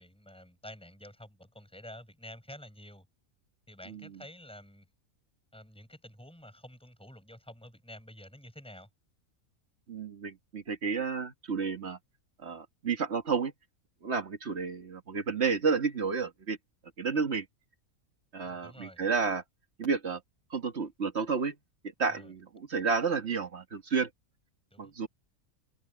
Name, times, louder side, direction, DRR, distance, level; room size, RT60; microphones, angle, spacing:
voice 1, 0.0-3.1 3.7-4.8 5.5-8.9 18.4-19.0 22.1-22.3 24.7-24.9, left 1 dB, 5° left, 8.0 m, -49 dB
voice 2, 9.9-12.0 12.4-13.5 14.0-16.6 17.0-17.5 18.3-19.4 19.8-20.2 20.5-21.6 22.0-24.1 24.8-25.1, right 5 dB, 50° right, 1.8 m, -31 dB
omnidirectional pair, 1.5 m